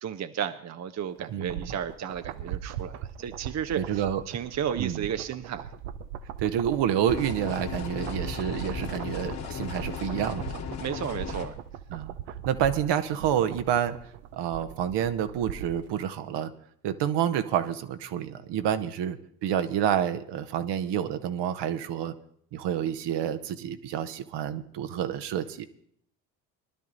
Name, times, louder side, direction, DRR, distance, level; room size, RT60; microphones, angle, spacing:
voice 1, 0.0-5.7 10.8-11.5, right 8 dB, 35° right, 10 dB, 0.9 m, -33 dB
sound 1, 1.2-15.9 16.2-16.3, right 10 dB, 70° right, 0.9 m, -40 dB
voice 2, 1.3-1.7 3.7-4.2 4.8-5.1 6.4-10.4 11.9-12.1 12.5-13.9 14.4-16.5 16.8-19.2 19.4-22.1 22.5-25.6, right 9 dB, 55° right, 10 dB, 1.2 m, -28 dB
sound 2, 7.1-11.5, left 7 dB, 55° left, 2.6 m, -36 dB
19.5 x 12.0 x 4.0 m, 0.65 s
hypercardioid pair, 55°, 49 cm